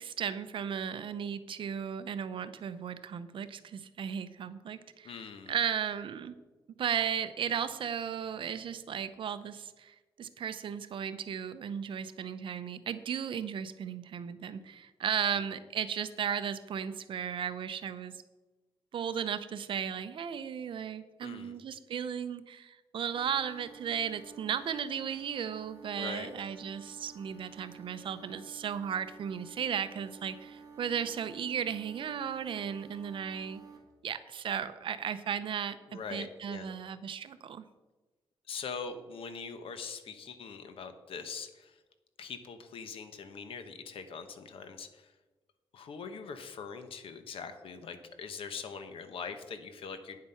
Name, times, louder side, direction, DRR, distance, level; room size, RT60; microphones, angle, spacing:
voice 1, 0.0-5.1 5.5-6.3 6.8-18.1 18.9-33.6 34.0-37.6, right 8 dB, 65° right, 12 dB, 0.7 m, -35 dB
voice 2, 5.0-5.5 21.2-21.5 25.9-26.3 35.9-36.7 38.5-41.8 42.2-45.1 45.7-50.2, left 5 dB, 75° left, 9 dB, 1.1 m, -42 dB
sound 1, 23.1-33.8, right 5 dB, 40° right, 2.0 m, -52 dB
9.5 x 7.6 x 5.7 m, 1.2 s
wide cardioid pair, 155°, 9 cm